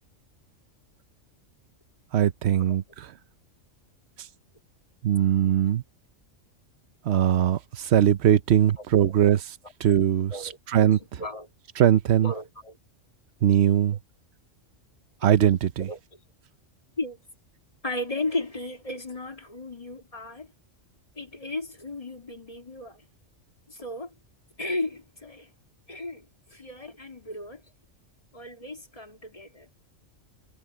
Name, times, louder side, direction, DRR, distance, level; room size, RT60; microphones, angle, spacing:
voice 1, 2.1-3.1 5.0-5.8 7.1-9.4 9.8-10.3 10.7-11.2 11.8-12.3 13.4-14.0 15.2-15.9, right 10 dB, 60° right, 0.9 m, -21 dB
voice 2, 8.8-9.2 10.3-10.6 11.2-11.5 12.2-12.8 15.8-16.0 17.0-17.2 17.8-20.5 21.2-23.0 23.7-24.1 24.6-25.5 25.9-27.6 28.3-29.7, left 2 dB, 30° left, 2.7 m, -35 dB
omnidirectional pair, 1.3 m